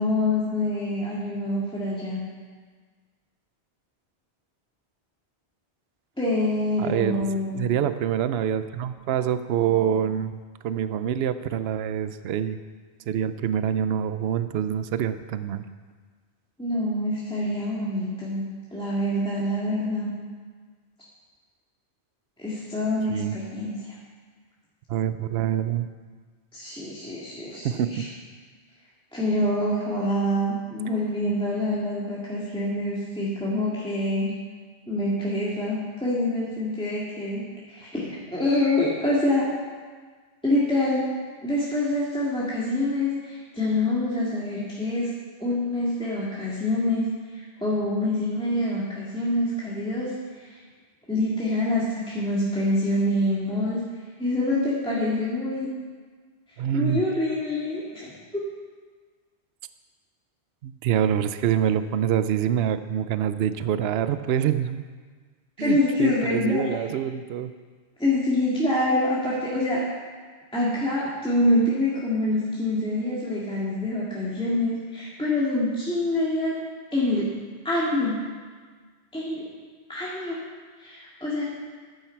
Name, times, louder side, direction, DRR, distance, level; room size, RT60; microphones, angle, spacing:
voice 1, 0.0-2.2 6.2-7.7 16.6-18.4 18.7-20.1 22.4-23.9 26.5-28.0 29.1-34.3 34.9-39.5 40.4-41.1 41.4-45.1 45.4-47.1 47.3-50.6 51.1-53.8 54.2-55.7 56.7-58.4 65.6-66.6 68.0-69.8 70.5-76.5 76.9-77.3 77.6-78.2 79.1-79.4 79.9-80.4 80.8-81.4, left 1 dB, 5° left, -8 dB, 2.0 m, -26 dB
voice 2, 6.8-7.3 7.5-10.4 10.6-12.6 13.1-15.6 23.1-23.3 24.9-25.9 27.5-28.1 56.6-57.0 60.6-64.9 65.6-67.5, right 9 dB, 75° right, 12 dB, 0.8 m, -26 dB
14.0 x 10.5 x 4.6 m, 1.5 s
omnidirectional pair, 1.1 m